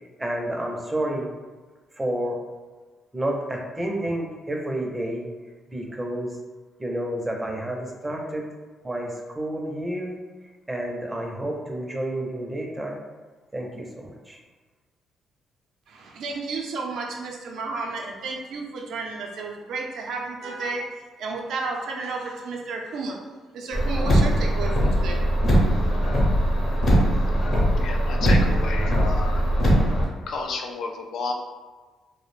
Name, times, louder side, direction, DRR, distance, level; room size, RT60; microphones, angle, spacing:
voice 1, 0.2-1.3 2.0-2.4 3.1-5.3 5.7-6.4 6.8-8.5 8.8-10.2 10.7-13.0 13.5-14.4, right 1 dB, 15° right, 0 dB, 0.5 m, -30 dB
voice 2, 15.9-23.2 23.5-25.2, right 3 dB, 75° right, 0 dB, 0.4 m, -32 dB
Car, 23.7-30.0, equal, 50° left, 0.8 m, -20 dB
voice 3, 27.8-29.4 30.3-31.3, left 4 dB, 75° left, 3 dB, 0.3 m, -31 dB
2.3 x 2.0 x 3.1 m, 1.3 s
cardioid pair, 90°, 0 cm